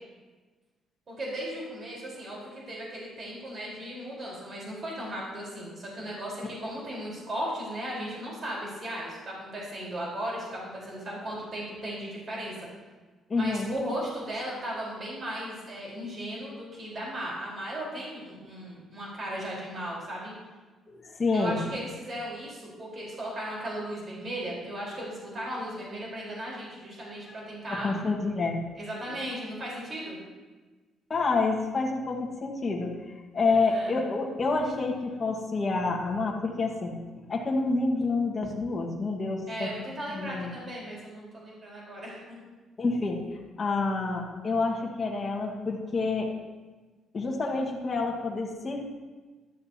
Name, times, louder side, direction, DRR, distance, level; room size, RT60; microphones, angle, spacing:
voice 1, 1.1-12.7 13.3-20.3 21.3-27.9 28.8-30.2 33.5-34.0 39.5-42.5, right 1 dB, 35° right, -4 dB, 4.2 m, -36 dB
voice 2, 13.3-13.7 20.9-21.6 27.7-28.6 31.1-32.9 33.3-36.9 37.3-39.7 40.1-40.5 42.8-43.2 43.6-46.3 47.1-48.8, left 3 dB, 25° left, -1 dB, 1.6 m, -28 dB
13.5 x 12.0 x 2.8 m, 1.3 s
cardioid pair, 150°, 0 cm